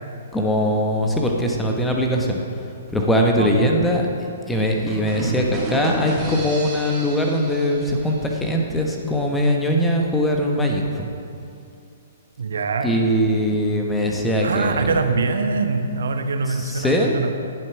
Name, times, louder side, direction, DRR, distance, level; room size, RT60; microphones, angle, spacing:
voice 1, 0.3-2.4 2.9-4.0 4.5-11.1 12.8-15.0 16.5-17.2, equal, 5° left, 1 dB, 1.3 m, -21 dB
sound 1, 4.9-8.6, right 1 dB, 10° right, 3.4 m, -31 dB
voice 2, 12.4-12.9 13.5-13.6 14.4-17.3, right 4 dB, 60° right, 7 dB, 1.0 m, -23 dB
19.0 x 7.5 x 4.8 m, 2.6 s
figure-of-eight pair, 120°, 0 cm